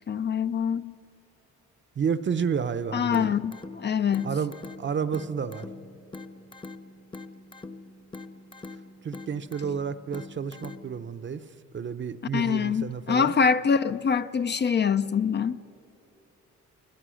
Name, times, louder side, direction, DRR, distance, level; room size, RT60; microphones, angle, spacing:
voice 1, 0.1-0.9 2.9-4.3 12.3-15.6, left 6 dB, 35° left, 0.5 m, -25 dB
voice 2, 2.0-3.3 4.2-5.7 9.0-11.4 11.7-13.4, right 6 dB, 40° right, 0.8 m, -30 dB
sound 1, 3.1-11.1, left 3 dB, 15° left, 0.9 m, -44 dB
24.0 x 17.0 x 6.4 m
cardioid pair, 90°, 30 cm